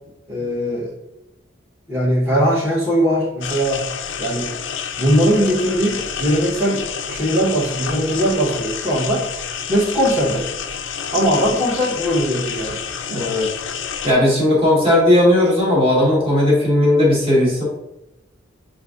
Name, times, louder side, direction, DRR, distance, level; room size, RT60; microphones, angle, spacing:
voice 1, 0.3-0.9 1.9-3.8 4.2-4.5 5.0-9.2 9.7-10.4 11.1-12.8, equal, 10° right, -10 dB, 1.0 m, -20 dB
sound 1, 3.4-14.1, left 7 dB, 70° left, 0.4 m, -29 dB
voice 2, 13.1-13.5 14.0-17.6, left 1 dB, 30° right, -5 dB, 1.3 m, -16 dB
6.6 x 2.6 x 2.4 m, 0.92 s
head